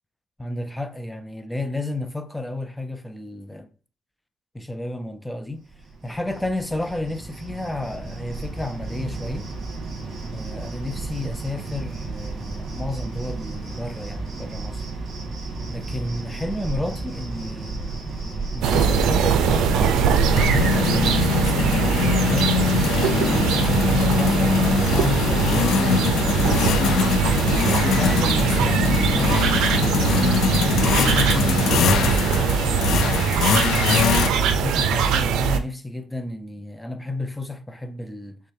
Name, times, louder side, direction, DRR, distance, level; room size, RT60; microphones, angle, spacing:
voice 1, 0.4-3.7 4.5-5.7 6.0-9.5 10.3-14.8 15.7-17.8 18.5-19.9 20.2-22.7 23.4-26.5 27.4-29.9 30.3-33.4 34.1-38.4, left 2 dB, 5° left, 0.5 m, -31 dB
Cricket, 5.7-21.4, right 3 dB, 50° right, 1.9 m, -34 dB
sound 1, 17.4-17.5 17.8-18.1 19.3-34.3, left 7 dB, 75° left, 0.4 m, -23 dB
sound 2, 18.6-35.6, right 7 dB, 90° right, 0.5 m, -21 dB
6.4 x 2.2 x 3.4 m
cardioid pair, 90°, 0 cm